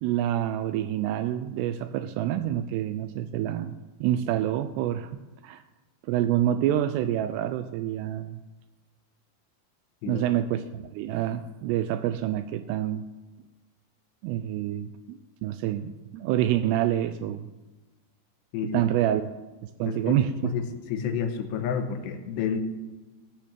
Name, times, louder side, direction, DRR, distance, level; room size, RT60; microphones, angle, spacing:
voice 1, 0.0-5.1 5.4-5.6 6.0-8.4 10.1-13.1 14.2-17.5 18.6-19.3 19.6-20.5, right 11 dB, 85° right, 11 dB, 2.6 m, -27 dB
voice 2, 19.9-20.2 20.4-20.6 20.9-22.6, left 7 dB, 85° left, 6 dB, 3.2 m, -30 dB
16.5 x 6.0 x 7.4 m, 1.2 s
omnidirectional pair, 4.8 m